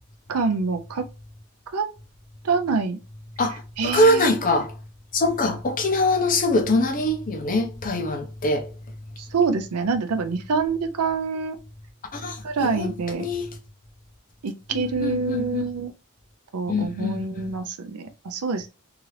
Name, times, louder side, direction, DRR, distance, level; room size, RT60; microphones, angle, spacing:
voice 1, 0.3-1.1 1.7-1.9 2.4-3.0 3.8-4.3 9.2-11.6 12.4-13.3 14.4-15.9 16.5-18.7, right 4 dB, 80° right, 0.5 m, -26 dB
voice 2, 3.4-4.8 5.1-8.7 12.1-12.9 13.2-13.5 14.7-15.7 16.7-17.5, left 1 dB, 40° left, 0.6 m, -23 dB
2.8 x 2.5 x 3.2 m
head